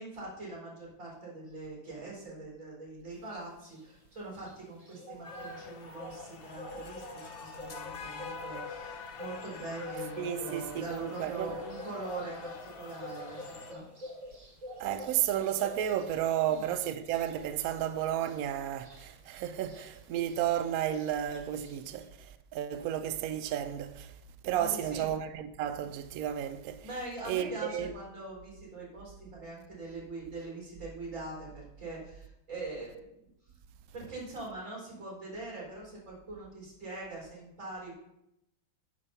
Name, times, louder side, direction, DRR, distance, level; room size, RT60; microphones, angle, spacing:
voice 1, 0.0-14.2 16.5-16.7 24.5-25.1 26.8-33.3 33.9-37.9, right 2 dB, 40° right, 4.3 m, -43 dB
sound 1, 3.2-22.0, left 1 dB, 20° right, 2.1 m, -47 dB
sound 2, 5.2-13.7, left 5 dB, 80° left, 0.5 m, -46 dB
voice 2, 10.2-11.5 14.8-24.1 24.4-26.9 27.2-27.9, right 10 dB, 85° right, 0.8 m, -32 dB
9.8 x 5.3 x 5.5 m
omnidirectional pair, 2.1 m